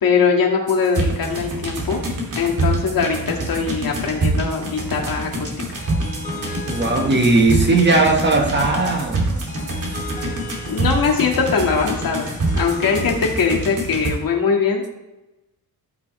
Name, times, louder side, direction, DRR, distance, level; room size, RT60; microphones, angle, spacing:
voice 1, 0.0-5.5 10.7-14.8, left 5 dB, 65° left, 0 dB, 2.0 m, -21 dB
sound 1, 0.7-14.1, right 2 dB, 55° right, 2.7 m, -26 dB
sound 2, 5.8-13.2, left 2 dB, 20° left, 1.6 m, -37 dB
voice 2, 6.7-9.3, right 3 dB, 30° right, 2 dB, 1.5 m, -17 dB
14.0 x 6.1 x 3.3 m, 0.97 s
cardioid pair, 125°, 37 cm